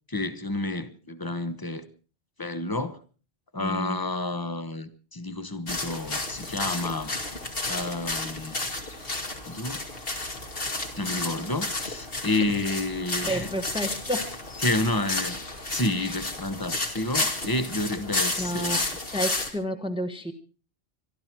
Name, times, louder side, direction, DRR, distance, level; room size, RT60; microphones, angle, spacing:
voice 1, 0.1-1.9 2.4-3.0 3.5-7.1 7.7-8.6 9.5-9.8 11.0-13.5 14.6-15.4 15.7-18.8, left 2 dB, 20° left, 1.1 m, -30 dB
voice 2, 3.6-4.0 13.2-14.3 16.0-16.1 18.4-18.8 19.1-20.3, equal, 5° right, 1.3 m, -30 dB
sound 1, 5.7-19.5, left 2 dB, 55° left, 2.5 m, -32 dB
25.0 x 12.5 x 4.6 m
omnidirectional pair, 1.2 m